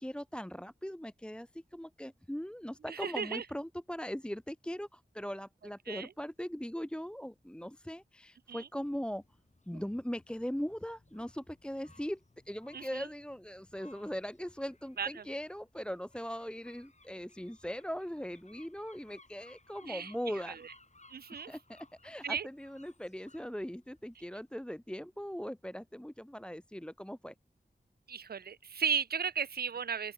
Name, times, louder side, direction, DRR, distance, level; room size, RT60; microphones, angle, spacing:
voice 1, 0.0-9.2 9.7-12.2 12.4-20.6 21.5-27.3, equal, 5° left, 1.5 m, -40 dB
voice 2, 2.9-3.4 5.9-6.1 8.5-8.7 12.7-13.1 15.0-15.1 19.8-20.1 20.5-20.7 21.1-21.5 22.2-22.5 28.1-30.1, right 7 dB, 60° right, 0.5 m, -35 dB
sound 1, 8.8-24.6, left 2 dB, 40° left, 6.7 m, -63 dB
open air
wide cardioid pair, 65°, 18 cm